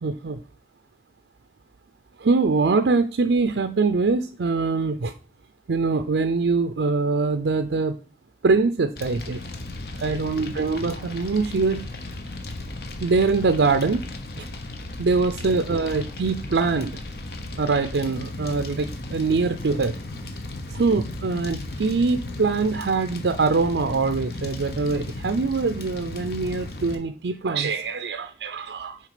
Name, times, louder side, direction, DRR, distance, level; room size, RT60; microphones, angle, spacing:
voice 1, 0.0-0.4 2.2-5.1 5.7-7.9 8.4-9.4 9.9-11.9 13.0-14.0 14.4-14.5 15.0-17.0 17.6-20.0 20.7-29.0, right 4 dB, 85° right, 8 dB, 0.5 m, -23 dB
Fire, 9.0-27.0, left 2 dB, 60° left, 1.0 m, -35 dB
6.5 x 4.6 x 5.0 m, 0.38 s
head